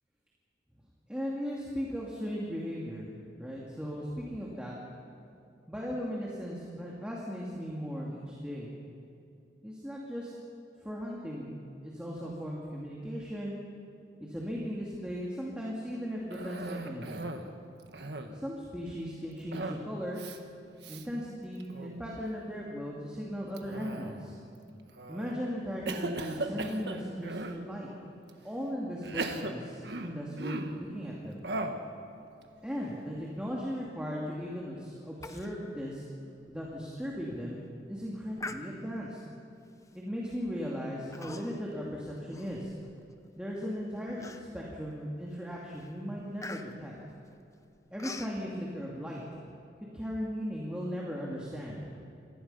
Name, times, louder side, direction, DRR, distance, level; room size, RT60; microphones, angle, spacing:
voice 1, 1.1-3.1 3.3-4.7 5.7-8.7 9.6-10.3 10.8-11.5 11.8-13.6 14.2-17.3 18.3-20.2 20.9-24.4 25.1-27.9 28.4-31.4 32.6-36.1 36.5-37.6 37.9-39.2 39.9-42.7 43.4-46.9 47.9-49.2 49.9-51.8, equal, 5° right, -4 dB, 2.4 m, -37 dB
Cough, 16.3-17.5 17.8-18.5 19.5-19.9 20.2-20.4 20.8-21.0 21.6-22.0 23.6-24.4 25.0-25.3 25.9-27.6 28.3-28.4 29.0-30.8 31.4-31.9, right 2 dB, 70° right, 1.6 m, -38 dB
Human voice, 35.2-35.5 35.9-36.0 36.5-36.6 37.1-37.4 38.4-39.1 39.9-40.1 41.1-41.7 42.1-43.1 43.6-43.7 44.2-44.8 45.2-45.5 45.7-48.4, left 3 dB, 20° left, 1.0 m, -44 dB
27.5 x 19.5 x 5.6 m, 2.6 s
head